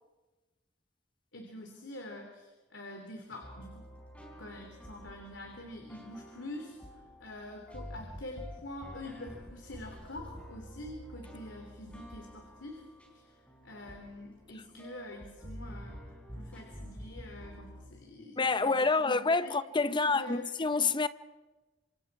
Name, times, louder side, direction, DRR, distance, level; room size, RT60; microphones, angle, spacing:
voice 1, 1.3-3.8 4.4-12.9 13.1-13.4 13.6-19.5 19.8-20.5, left 1 dB, 75° left, 3.0 m, -46 dB
sound 1, 3.4-17.9, equal, 5° left, 4.5 m, -48 dB
voice 2, 18.4-21.1, left 4 dB, 25° left, 0.7 m, -28 dB
27.5 x 26.5 x 4.7 m
head